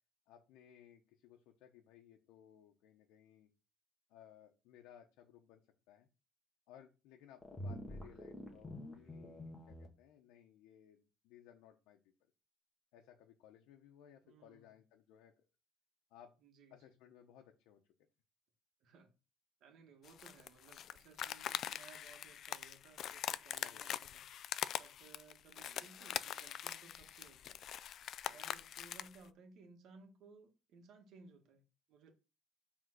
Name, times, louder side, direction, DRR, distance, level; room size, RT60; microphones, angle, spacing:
voice 1, 0.3-3.5 4.1-5.6 5.9-6.1 6.7-12.0 12.9-15.5 16.1-16.3 16.7-17.8 23.6-23.9 28.2-28.4, left 10 dB, 80° left, 1.0 m, -61 dB
sound 1, 7.4-9.9, equal, 10° left, 1.6 m, -47 dB
voice 2, 14.2-14.8 16.4-16.9 18.8-19.1 19.6-24.2 24.8-27.6 28.2-32.1, right 4 dB, 55° right, 1.8 m, -61 dB
sound 2, 20.0-29.2, left 10 dB, 45° left, 0.4 m, -43 dB
7.4 x 3.8 x 6.3 m
cardioid pair, 160°, 0 cm